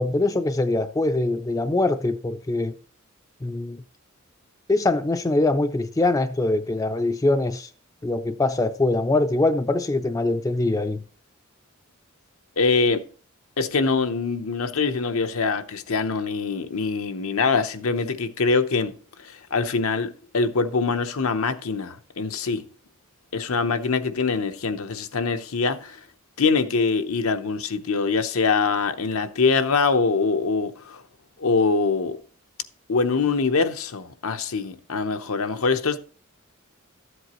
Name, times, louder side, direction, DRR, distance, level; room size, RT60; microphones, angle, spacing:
voice 1, 0.0-2.7 3.4-3.8 4.7-7.7 8.0-11.0, left 2 dB, 15° left, 0.4 m, -23 dB
voice 2, 12.6-13.0 13.6-18.9 19.2-22.7 23.3-26.0 26.4-31.0 31.4-32.2 32.9-36.0, left 4 dB, 85° left, 0.8 m, -24 dB
13.0 x 7.9 x 3.0 m
head